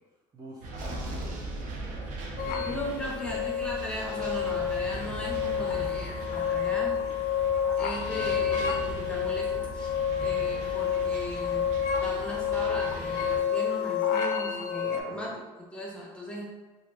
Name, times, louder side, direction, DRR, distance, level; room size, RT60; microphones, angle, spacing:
voice 1, 0.3-2.1 2.4-3.4 6.7-7.2 14.8-15.4, right 1 dB, 25° right, -4 dB, 0.6 m, -47 dB
sound 1, 0.6-13.4, right 2 dB, 60° right, 0.7 m, -39 dB
sound 2, 2.4-15.0, left 8 dB, 65° left, 0.4 m, -29 dB
voice 2, 2.7-7.0 7.8-9.9 10.2-11.7 12.0-15.3 15.7-16.5, left 1 dB, 5° left, -3 dB, 0.8 m, -38 dB
2.5 x 2.4 x 3.3 m, 1.3 s
supercardioid pair, 85°, 15 cm